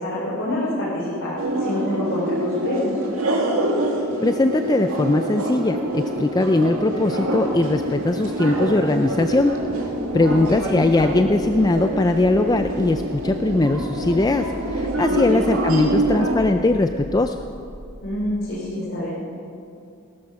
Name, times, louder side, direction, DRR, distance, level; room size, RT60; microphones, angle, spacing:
voice 1, 0.0-3.0 10.1-10.3 15.1-15.2 18.0-19.1, left 1 dB, 60° left, -8 dB, 3.6 m, -27 dB
sound 1, 1.4-16.3, right 1 dB, 80° right, 2.1 m, -25 dB
sound 2, 3.3-18.5, equal, 60° right, 1.5 m, -41 dB
voice 2, 4.2-9.6 10.1-17.4, left 2 dB, 20° left, 7 dB, 0.4 m, -20 dB
18.5 x 12.5 x 5.9 m, 2.5 s
head